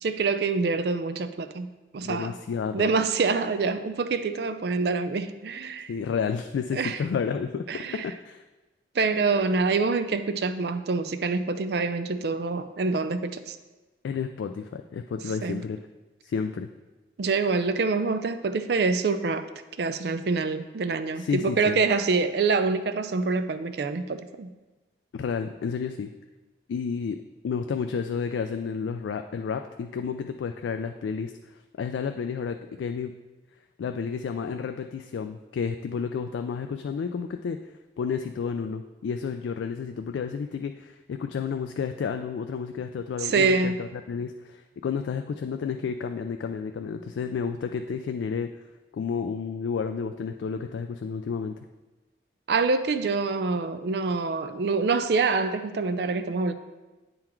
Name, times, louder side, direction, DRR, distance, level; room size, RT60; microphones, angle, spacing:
voice 1, 0.0-2.4 2.7-5.9 6.7-7.0 7.7-8.1 9.0-13.6 15.4-15.6 17.2-19.5 19.8-24.5 43.2-43.8 52.5-56.5, right 4 dB, 60° right, 10 dB, 0.4 m, -26 dB
voice 2, 2.0-2.9 5.9-8.4 14.0-15.8 16.2-16.7 21.2-21.8 25.1-26.1 26.7-27.2 27.4-31.3 31.8-33.1 33.8-37.6 38.0-48.5 48.9-51.6, left 6 dB, 85° left, 6 dB, 0.3 m, -31 dB
8.6 x 3.9 x 4.5 m, 1.2 s
head